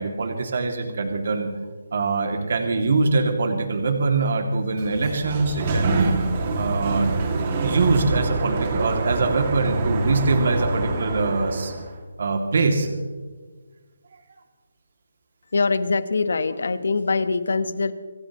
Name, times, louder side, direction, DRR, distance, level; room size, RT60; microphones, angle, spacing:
voice 1, 0.0-1.5 1.9-6.1 6.5-7.1 7.6-11.7 12.2-13.0, right 3 dB, 50° right, 3 dB, 2.5 m, -23 dB
Sliding door, 4.6-12.0, right 3 dB, 30° right, 2.4 m, -25 dB
voice 2, 15.5-17.9, left 4 dB, 65° left, 12 dB, 1.3 m, -23 dB
26.5 x 15.0 x 3.1 m, 1.4 s
hypercardioid pair, 165°, 0 cm